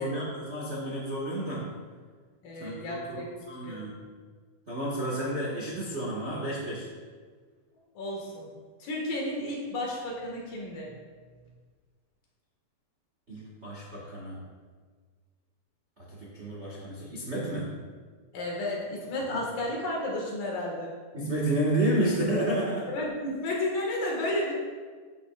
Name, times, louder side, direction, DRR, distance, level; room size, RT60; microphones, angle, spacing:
voice 1, 0.0-1.7 2.6-4.0 4.7-6.9 13.3-14.4 16.0-17.7 21.1-22.9, right 1 dB, 75° right, -5 dB, 0.6 m, -31 dB
voice 2, 2.4-3.3 3.6-3.8 7.9-8.5 8.8-10.9 18.3-20.9 22.9-24.5, left 1 dB, 70° left, -2 dB, 3.3 m, -32 dB
12.0 x 7.8 x 2.4 m, 1.5 s
omnidirectional pair, 4.1 m